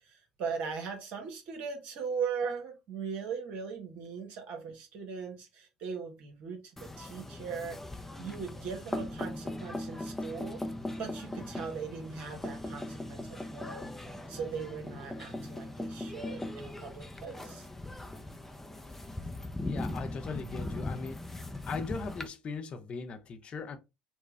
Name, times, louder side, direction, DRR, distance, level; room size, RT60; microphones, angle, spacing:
voice 1, 0.0-7.8 8.2-10.6 11.0-13.9 14.3-17.7, right 6 dB, 65° right, 1.4 m, -39 dB
sound 1, 6.8-22.3, left 1 dB, 10° left, 0.7 m, -39 dB
voice 2, 19.6-21.2 21.6-23.8, left 4 dB, 45° left, 0.7 m, -39 dB
4.3 x 2.3 x 3.2 m
hypercardioid pair, 55°, 3 cm